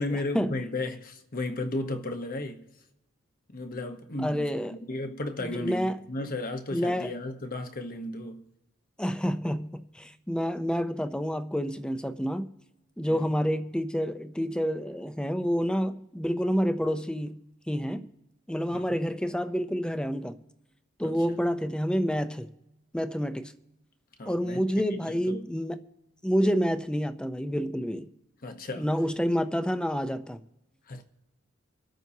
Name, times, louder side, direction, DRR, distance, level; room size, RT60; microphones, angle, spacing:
voice 1, 0.0-2.7 3.5-8.4 13.1-13.3 18.7-19.0 21.0-21.2 24.2-24.6 24.9-25.5 28.4-28.9 30.9-31.0, left 2 dB, 45° left, 1.0 m, -34 dB
voice 2, 4.2-4.8 5.4-6.3 6.7-7.1 9.0-12.5 13.0-17.4 17.7-18.1 18.5-20.4 21.0-22.5 22.9-23.5 24.3-25.8 26.2-28.1 28.7-30.4, equal, 5° left, 0.5 m, -28 dB
26.5 x 9.0 x 2.8 m
head